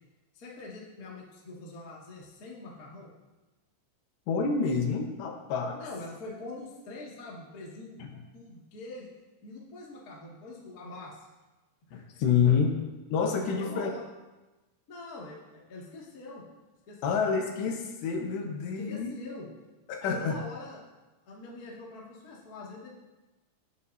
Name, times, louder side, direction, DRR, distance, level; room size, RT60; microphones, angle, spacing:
voice 1, 0.3-3.1 5.8-8.0 8.3-9.1 9.4-11.3 11.9-12.0 12.4-12.5 13.5-14.0 14.9-16.4 16.9-17.2 18.8-19.5 20.0-20.8 21.2-22.9, left 2 dB, 35° left, -5 dB, 1.4 m, -44 dB
voice 2, 4.3-5.8 11.9-12.7 13.1-13.9 17.0-19.1 19.9-20.4, left 6 dB, 75° left, 2 dB, 3.3 m, -28 dB
17.0 x 9.1 x 2.7 m, 1.1 s
omnidirectional pair, 5.1 m